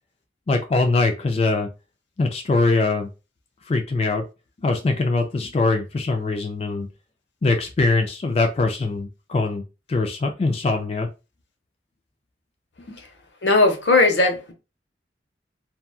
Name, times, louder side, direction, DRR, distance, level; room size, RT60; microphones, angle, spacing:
voice 1, 0.5-1.7 2.2-3.1 3.7-4.2 4.6-6.9 7.4-9.6 9.9-11.1 12.9-13.0, left 3 dB, 35° left, 0.3 m, -22 dB
voice 2, 13.4-14.5, left 3 dB, 80° left, 0.7 m, -17 dB
2.8 x 2.2 x 2.3 m
head